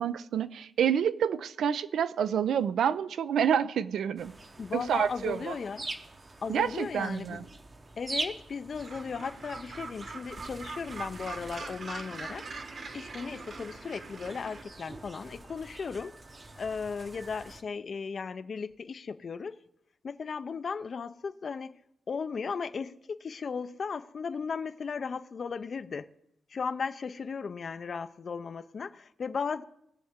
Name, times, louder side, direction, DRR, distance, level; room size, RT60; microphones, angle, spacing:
voice 1, 0.0-4.3 4.7-5.5 6.5-7.5, right 8 dB, 75° right, 0.6 m, -28 dB
sound 1, 4.2-17.6, right 2 dB, 25° right, 0.9 m, -44 dB
voice 2, 4.6-5.9 6.4-7.5 8.0-12.4 12.9-16.1 16.6-19.6 20.0-21.8 22.1-26.1 26.5-29.6, left 5 dB, 40° left, 0.5 m, -36 dB
Gull seagull, 8.8-14.6, right 3 dB, 45° right, 1.3 m, -43 dB
21.0 x 7.6 x 3.6 m
wide cardioid pair, 150°, 0 cm